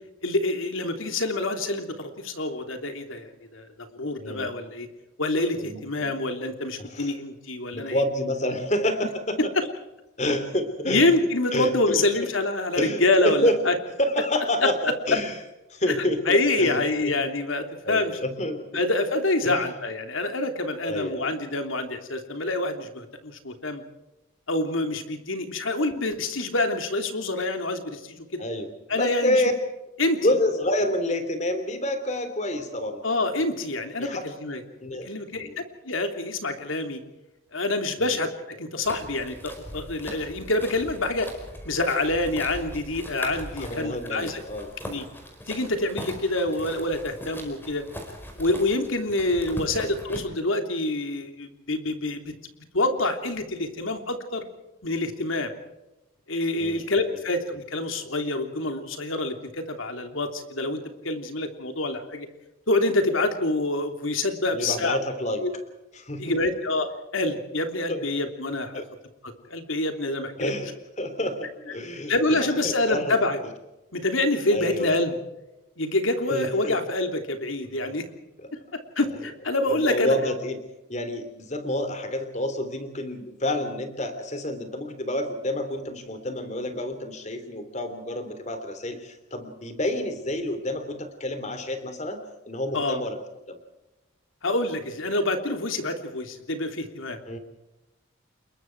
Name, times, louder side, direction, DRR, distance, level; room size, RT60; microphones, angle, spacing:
voice 1, 0.2-4.9 5.2-8.0 9.4-9.5 10.9-13.7 14.6-14.7 16.3-18.2 18.7-23.8 24.5-28.4 28.9-29.4 30.0-30.2 33.0-34.6 35.0-35.5 35.8-37.0 37.5-41.3 41.6-44.4 44.8-45.0 45.5-47.8 48.4-52.3 52.7-54.5 54.8-55.5 56.3-62.3 62.7-65.0 65.4-65.5 66.2-68.8 69.2-70.5 72.1-73.4 73.9-75.2 75.8-78.1 79.0-80.2 92.7-93.0 94.4-97.2, left 2 dB, 75° left, 6 dB, 3.1 m, -26 dB
voice 2, 4.2-4.5 5.6-6.1 6.8-7.2 7.7-9.5 10.2-11.0 11.5-12.3 12.7-13.6 14.0-15.4 15.7-17.1 17.8-18.7 19.4-19.7 20.8-21.3 28.4-29.5 30.2-33.1 34.0-34.3 34.8-35.6 38.0-38.2 43.6-44.7 49.5-49.6 56.6-57.2 64.5-65.4 65.9-66.4 67.9-68.1 68.7-68.9 70.4-73.2 74.5-75.0 76.3-76.8 77.6-77.9 78.4-78.5 79.7-80.6 80.9-92.2 92.5-93.2 93.5-93.6 97.3-97.4, left 1 dB, 35° left, 9 dB, 3.2 m, -29 dB
sound 1, 38.8-50.2, equal, 10° left, 4.8 m, -40 dB
28.5 x 22.0 x 4.7 m, 1.0 s
head